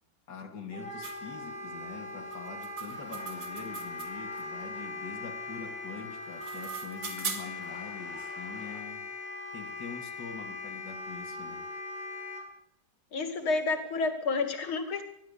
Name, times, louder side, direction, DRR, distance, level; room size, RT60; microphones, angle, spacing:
voice 1, 0.3-9.1 9.5-11.7, left 5 dB, 55° left, 3.3 m, -44 dB
Wind instrument woodwind instrument, 0.7-12.4, left 3 dB, 5° left, 7.3 m, -40 dB
sound 1, 1.0-1.2 2.3-4.4 6.1-7.7, right 5 dB, 65° right, 3.6 m, -40 dB
sound 2, 2.9-6.8 7.4-8.8, right 1 dB, 50° right, 8.1 m, -54 dB
voice 2, 13.1-15.0, left 3 dB, 90° left, 3.1 m, -30 dB
22.5 x 15.0 x 8.6 m
omnidirectional pair, 2.2 m